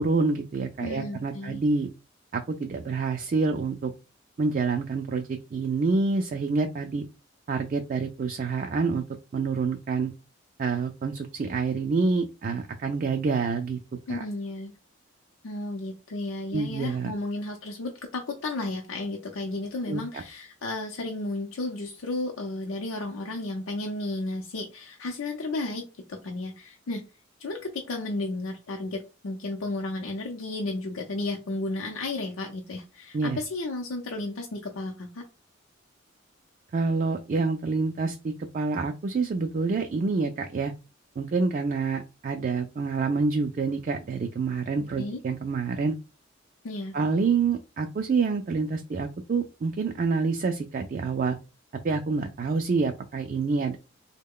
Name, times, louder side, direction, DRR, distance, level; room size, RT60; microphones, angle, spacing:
voice 1, 0.0-1.9 2.3-3.9 4.4-7.0 7.5-9.0 9.3-10.1 10.6-13.8 14.1-14.2 16.5-17.1 19.9-20.2 33.1-33.4 36.7-40.7 41.2-46.0 46.9-51.4 51.8-53.8, right 4 dB, 40° right, 5 dB, 0.3 m, -27 dB
voice 2, 0.8-1.6 14.1-14.7 15.4-27.0 27.4-35.2 45.0-45.2 46.6-47.0, left 2 dB, 85° left, 1 dB, 0.6 m, -33 dB
3.7 x 2.1 x 3.6 m, 0.29 s
head